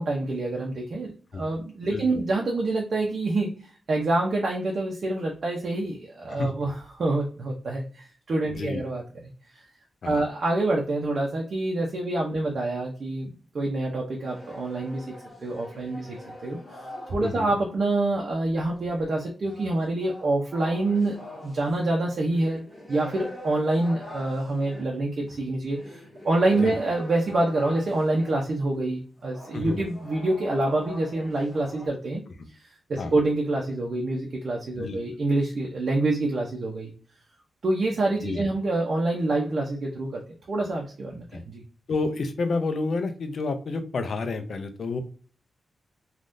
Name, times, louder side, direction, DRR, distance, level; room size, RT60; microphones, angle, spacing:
voice 1, 0.0-9.3 10.0-15.1 15.4-16.2 16.4-16.6 17.1-32.2 32.5-36.9 37.6-40.2 40.5-41.6, right 2 dB, 50° right, -1 dB, 0.6 m, -26 dB
voice 2, 1.9-2.2 6.3-6.5 8.5-8.8 10.0-10.2 17.2-17.5 26.6-26.8 29.5-29.8 32.4-32.5 33.0-33.1 34.8-35.0 38.2-38.5 41.3-41.4 41.9-45.0, left 3 dB, 55° left, 7 dB, 0.5 m, -30 dB
sound 1, 14.1-17.6 18.6-28.5 29.2-31.9, left 1 dB, 15° left, 1.3 m, -43 dB
3.4 x 2.3 x 2.6 m, 0.42 s
wide cardioid pair, 135°, 0 cm